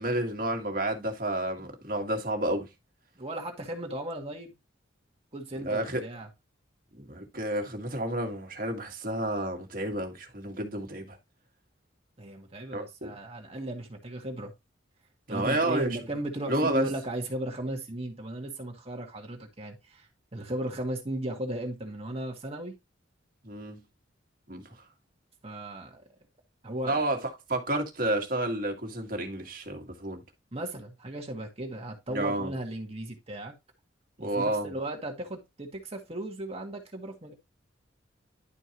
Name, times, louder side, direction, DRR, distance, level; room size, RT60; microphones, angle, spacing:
voice 1, 0.0-2.7 5.6-6.0 6.9-11.2 12.7-13.1 15.3-16.0 16.5-16.9 23.4-23.8 24.5-24.8 26.9-30.2 32.1-32.5 34.2-34.7, right 1 dB, 45° right, 1.9 m, -30 dB
voice 2, 3.2-4.5 5.3-6.3 12.2-14.5 15.3-22.7 25.4-26.1 26.6-27.0 30.5-33.5 34.2-37.3, right 1 dB, 30° right, 1.5 m, -36 dB
11.0 x 4.5 x 3.0 m
head